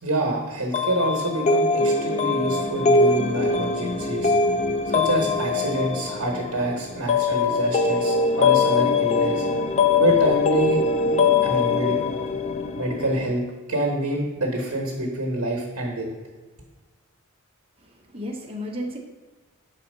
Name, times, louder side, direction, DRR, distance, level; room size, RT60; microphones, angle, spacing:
voice 1, 0.0-4.3 4.9-9.5 10.0-10.8 11.1-12.0 12.8-13.4 13.7-16.1, right 1 dB, 75° right, -1 dB, 1.1 m, -27 dB
sound 1, 0.7-13.3, left 4 dB, 30° left, 0.4 m, -22 dB
voice 2, 17.8-19.0, equal, 25° right, 0 dB, 1.0 m, -33 dB
5.7 x 4.2 x 5.3 m, 1.3 s
head